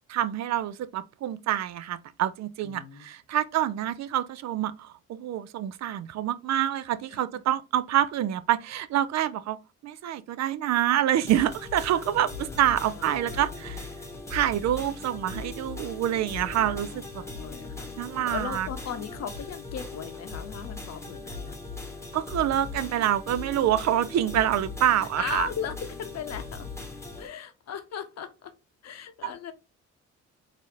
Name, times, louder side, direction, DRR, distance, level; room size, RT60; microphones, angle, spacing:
voice 1, 0.1-9.6 9.8-13.9 14.3-17.2 18.0-18.7 22.1-25.5, right 11 dB, 60° right, 0.4 m, -27 dB
voice 2, 2.6-3.1 7.1-7.2 11.9-13.8 16.4-17.9 18.2-21.6 25.0-26.7 27.2-28.5 28.8-29.5, left 7 dB, 60° left, 0.7 m, -38 dB
sound 1, 11.3-27.3, left 3 dB, 10° left, 1.0 m, -39 dB
4.0 x 2.5 x 3.0 m
cardioid pair, 90°, 30 cm